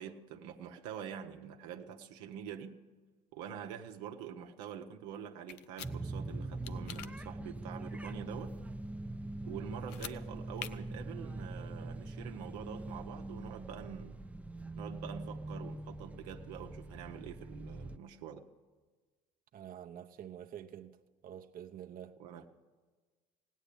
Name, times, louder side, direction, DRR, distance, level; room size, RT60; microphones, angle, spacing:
voice 1, 0.0-2.8 3.3-8.6 9.4-14.2 14.8-18.4 22.2-22.5, right 8 dB, 80° right, 1.0 m, -46 dB
sound 1, 5.5-5.9 6.6-7.1 9.8-10.2 10.6-10.7, left 11 dB, 85° left, 0.6 m, -44 dB
sound 2, 5.8-18.0, right 2 dB, 5° right, 0.6 m, -43 dB
voice 2, 19.5-21.0 21.2-22.1, right 10 dB, 45° right, 0.8 m, -47 dB
17.0 x 9.3 x 8.4 m
hypercardioid pair, 70°, 20 cm